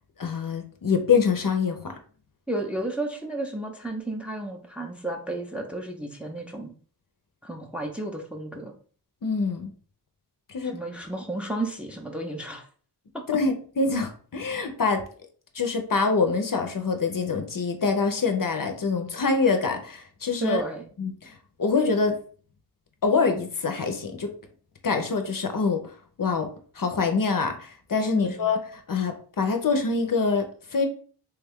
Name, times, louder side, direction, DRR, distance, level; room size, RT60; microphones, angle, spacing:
voice 1, 0.2-2.0 9.2-9.7 10.5-10.7 13.3-15.0 15.5-20.6 21.0-22.2 23.0-24.3 24.8-25.9 26.2-26.5 26.8-30.9, left 4 dB, 55° left, 5 dB, 0.6 m, -25 dB
voice 2, 2.5-6.7 7.4-8.7 10.7-12.7 13.1-13.2 20.4-20.9 28.1-28.5, right 2 dB, 5° right, 2 dB, 0.5 m, -32 dB
3.3 x 2.3 x 3.5 m, 0.44 s
wide cardioid pair, 60°, 40 cm